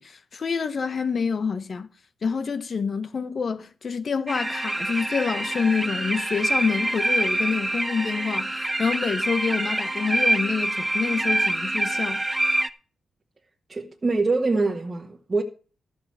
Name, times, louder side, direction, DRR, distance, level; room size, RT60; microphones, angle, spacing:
voice 1, 0.0-1.9 2.2-12.2, left 5 dB, 50° left, 1.0 m, -27 dB
sound 1, 4.3-12.7, right 1 dB, 15° right, 0.7 m, -26 dB
voice 2, 13.7-15.4, right 3 dB, 30° right, 1.5 m, -24 dB
13.5 x 6.6 x 5.8 m
cardioid pair, 90°, 0 cm